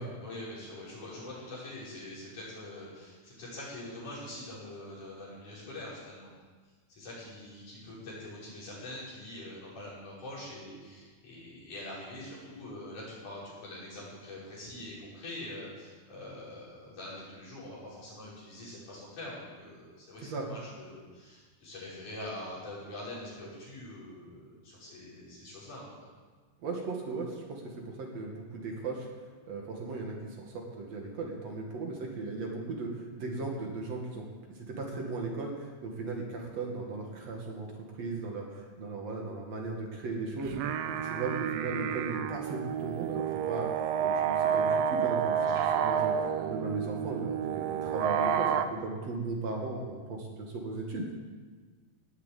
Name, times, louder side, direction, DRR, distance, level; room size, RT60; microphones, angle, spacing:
voice 1, 0.0-6.3 6.9-25.9 45.4-45.6, left 1 dB, 70° left, -8 dB, 7.5 m, -44 dB
voice 2, 26.6-29.1 29.5-40.7 41.0-51.1, right 3 dB, 55° right, 0 dB, 2.9 m, -37 dB
sound 1, 40.4-48.7, right 8 dB, 75° right, 1.6 m, -30 dB
18.5 x 7.5 x 8.4 m, 1.4 s
omnidirectional pair, 3.7 m